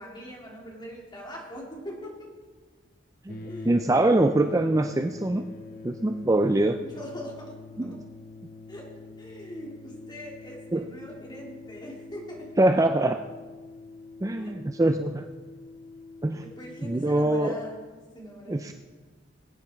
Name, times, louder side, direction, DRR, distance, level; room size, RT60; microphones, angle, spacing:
voice 1, 0.0-2.3 3.5-3.8 6.8-7.5 7.8-8.0 8.7-8.9 9.2-12.5 14.4-14.6 16.4-17.8 18.1-18.6, equal, 25° left, -2 dB, 3.4 m, -41 dB
sound 1, 3.3-17.3, left 3 dB, 50° left, 1.1 m, -45 dB
voice 2, 3.7-5.4 5.8-6.8 7.8-8.0 10.7-10.9 12.6-13.2 14.2-15.3 16.2-16.4 16.8-17.5 18.5-18.7, right 2 dB, 20° right, 7 dB, 0.4 m, -23 dB
21.0 x 9.3 x 4.6 m, 1.4 s
head